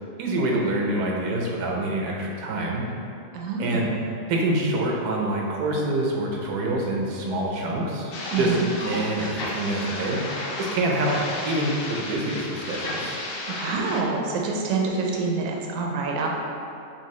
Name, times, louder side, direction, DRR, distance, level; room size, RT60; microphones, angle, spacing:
voice 1, 0.2-2.8 3.6-3.9 4.3-8.5 8.8-10.2 10.6-11.2 11.5-13.2, right 1 dB, 85° right, -1 dB, 1.2 m, -26 dB
voice 2, 3.3-4.0 8.3-8.7 13.6-16.3, right 4 dB, 70° right, -1 dB, 0.9 m, -26 dB
sound 1, 8.1-14.0, left 2 dB, 70° left, 0.5 m, -33 dB
4.5 x 3.1 x 3.1 m, 2.5 s
omnidirectional pair, 1.6 m